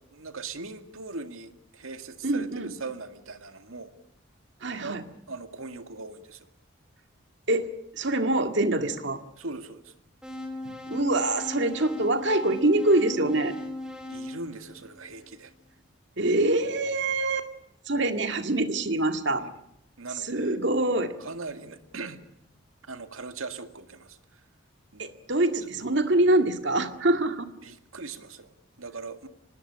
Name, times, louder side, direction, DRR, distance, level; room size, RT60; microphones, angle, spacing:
voice 1, 0.1-3.9 4.8-5.0 5.3-6.5 9.4-9.9 14.1-15.5 19.4-19.5 20.0-20.6 21.2-22.3 22.8-24.4 24.9-25.1 27.6-29.3, right 3 dB, 90° right, 8 dB, 2.1 m, -40 dB
voice 2, 2.2-2.7 4.6-5.0 7.5-9.2 10.7-13.5 16.2-17.5 17.9-19.5 20.3-21.1 25.0-27.5, right 2 dB, 60° right, 8 dB, 2.0 m, -25 dB
sound 1, 10.2-15.4, left 2 dB, 5° right, 3.4 m, -38 dB
25.0 x 20.0 x 10.0 m, 0.76 s
head